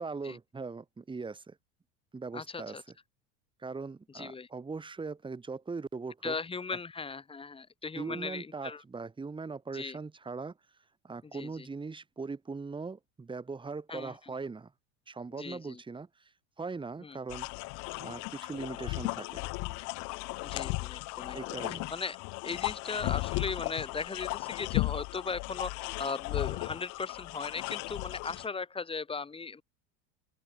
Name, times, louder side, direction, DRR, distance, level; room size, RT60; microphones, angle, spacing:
voice 1, 0.0-1.6 2.1-2.8 3.6-6.3 7.9-10.6 11.0-14.7 15.1-16.3 16.6-17.5 18.0-19.4 21.3-21.9, right 4 dB, 15° right, 5.4 m, -40 dB
voice 2, 2.3-2.8 4.1-4.5 6.2-8.8 9.7-10.0 11.2-11.7 13.9-14.2 15.3-15.8 17.0-17.2 20.4-22.2 22.4-29.6, left 4 dB, 15° left, 5.6 m, -38 dB
sound 1, 17.3-28.5, left 28 dB, 55° left, 0.8 m, -36 dB
open air
supercardioid pair, 140°, 36 cm